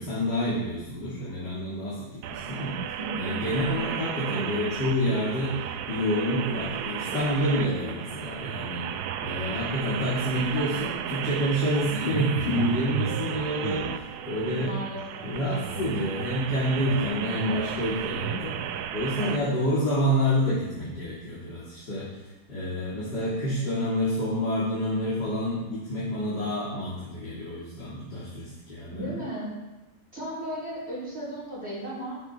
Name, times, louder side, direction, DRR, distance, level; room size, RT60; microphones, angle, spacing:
voice 1, 0.0-8.9 9.2-14.8 15.2-22.1 22.5-29.2, equal, 55° left, -8 dB, 3.7 m, -28 dB
sound 1, 2.2-19.4, right 9 dB, 65° right, 1.0 m, -33 dB
voice 2, 3.0-3.4 14.6-15.3 28.9-29.5 30.1-32.2, right 1 dB, 30° right, -8 dB, 5.0 m, -35 dB
13.0 x 11.5 x 4.7 m, 1.1 s
omnidirectional pair, 2.1 m